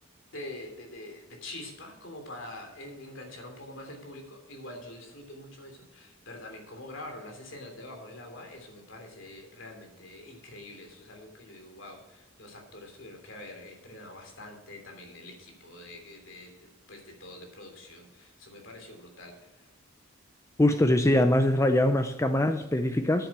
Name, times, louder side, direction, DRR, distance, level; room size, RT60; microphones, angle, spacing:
voice 1, 0.3-19.7, left 1 dB, 65° left, 3.1 m, -45 dB
voice 2, 20.6-23.3, left 1 dB, 15° left, 0.5 m, -23 dB
10.0 x 8.0 x 6.0 m
head